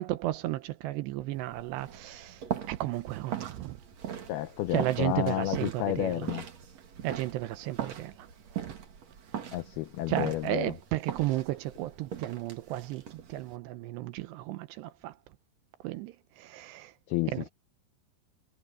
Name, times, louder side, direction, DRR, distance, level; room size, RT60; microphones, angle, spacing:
voice 1, 0.0-3.8 4.7-6.3 7.0-8.3 8.6-8.7 10.1-15.2 15.8-16.9 17.3-17.5, right 15 dB, 80° right, 2.7 m, -34 dB
sound 1, 1.3-13.6, right 9 dB, 45° right, 2.6 m, -40 dB
voice 2, 4.3-6.4 9.5-10.7 17.1-17.5, left 15 dB, 85° left, 2.2 m, -31 dB
omnidirectional pair, 5.4 m